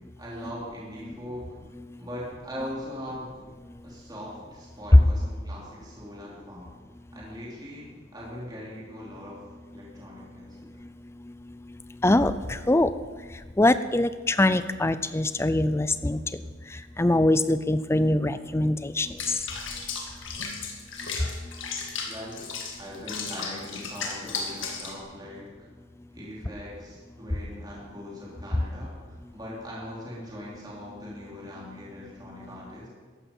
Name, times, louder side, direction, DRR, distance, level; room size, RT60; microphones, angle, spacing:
voice 1, 0.2-1.5 2.0-3.3 3.8-6.7 7.1-9.4 9.7-10.6 22.1-22.4 22.8-25.5 26.1-32.9, equal, 20° right, -6 dB, 3.3 m, -40 dB
voice 2, 12.0-12.9 13.6-16.2 17.0-19.1, left 1 dB, 15° left, 13 dB, 0.5 m, -23 dB
Water / Bathtub (filling or washing), 19.2-25.0, left 5 dB, 65° left, 1.9 m, -35 dB
14.5 x 11.5 x 5.5 m, 1.4 s
head